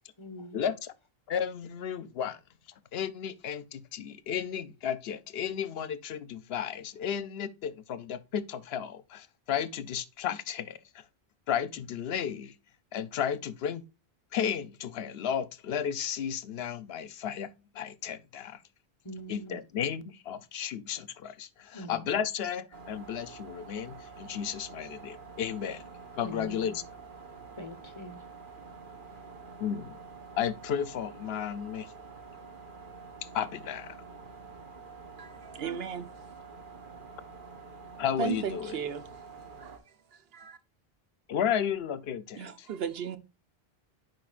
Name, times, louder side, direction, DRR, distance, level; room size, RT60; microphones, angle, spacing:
voice 1, 0.2-0.7 19.0-19.6 21.7-22.2 26.2-26.9 27.6-28.3 29.0-29.3, left 1 dB, 30° left, 0.9 m, -44 dB
voice 2, 1.3-2.4 2.9-10.8 11.5-12.5 12.9-13.8 14.3-17.5 17.7-18.6 19.3-25.8 26.1-26.7 29.6-30.0 30.4-31.9 33.3-34.0 38.0-38.7 41.3-42.5, left 8 dB, 75° left, 0.9 m, -33 dB
sound 1, 22.7-39.8, right 4 dB, 55° right, 1.4 m, -48 dB
voice 3, 35.2-36.1 38.2-39.0 39.6-39.8 40.1-40.6 42.4-43.2, right 7 dB, 75° right, 1.0 m, -35 dB
10.5 x 4.7 x 2.4 m
omnidirectional pair, 1.0 m